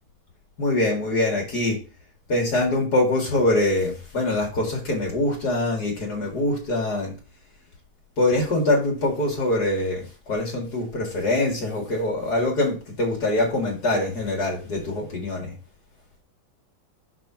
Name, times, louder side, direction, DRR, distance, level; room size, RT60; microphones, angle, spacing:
voice 1, 0.6-1.8 2.3-7.1 8.2-15.6, left 2 dB, 50° left, -1 dB, 2.8 m, -24 dB
5.9 x 5.1 x 6.0 m, 0.33 s
omnidirectional pair, 2.2 m